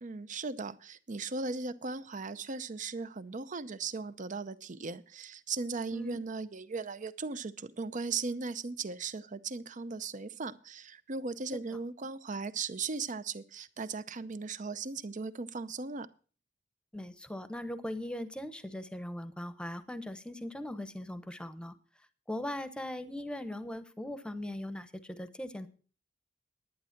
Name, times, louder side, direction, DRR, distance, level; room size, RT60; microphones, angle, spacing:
voice 1, 0.0-16.1, right 4 dB, 45° right, 14 dB, 0.7 m, -37 dB
voice 2, 16.9-21.8 22.3-25.7, left 1 dB, 5° left, 12 dB, 0.9 m, -40 dB
11.0 x 9.6 x 5.8 m, 0.39 s
head